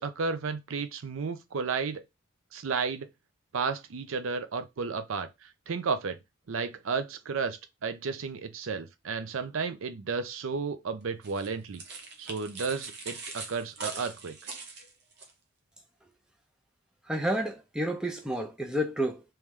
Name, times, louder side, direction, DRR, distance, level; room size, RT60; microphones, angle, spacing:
voice 1, 0.0-2.0 2.5-3.1 3.5-5.3 5.7-6.2 6.5-11.8 12.2-14.3, right 5 dB, 75° right, 0.5 m, -33 dB
sound 1, 11.2-15.3, right 4 dB, 50° right, 0.8 m, -42 dB
voice 2, 17.1-19.2, equal, 5° right, 0.5 m, -30 dB
3.1 x 3.1 x 3.6 m
head